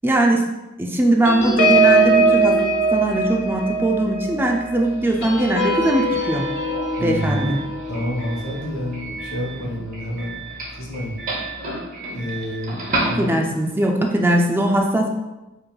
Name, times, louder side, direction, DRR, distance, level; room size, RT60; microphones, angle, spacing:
voice 1, 0.0-0.4 0.8-2.6 2.9-6.5 7.0-7.6 13.0-15.1, right 1 dB, 10° right, 1 dB, 0.3 m, -20 dB
sound 1, 1.2-10.2 10.6-10.8 11.1-11.4, right 2 dB, 55° left, 0.5 m, -22 dB
Doorbell, 4.7-13.8, right 2 dB, 40° right, 0.8 m, -33 dB
voice 2, 7.0-7.5 7.9-10.4 10.7-11.2 12.0-13.4, equal, 80° left, -2 dB, 1.0 m, -28 dB
4.9 x 3.1 x 2.3 m, 1.0 s
head